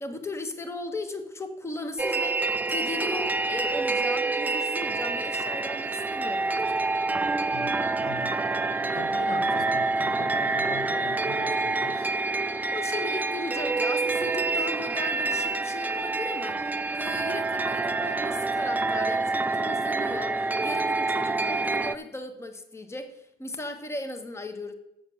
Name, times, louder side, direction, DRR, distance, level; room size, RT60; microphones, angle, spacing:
voice 1, 0.0-6.8 12.7-24.7, left 2 dB, 15° left, 7 dB, 1.0 m, -37 dB
sound 1, 2.0-22.0, right 3 dB, 10° right, 0.3 m, -27 dB
voice 2, 7.5-8.4 8.8-12.1, left 4 dB, 65° left, 8 dB, 0.9 m, -41 dB
7.3 x 7.0 x 7.0 m, 0.85 s
cardioid pair, 110°, 17 cm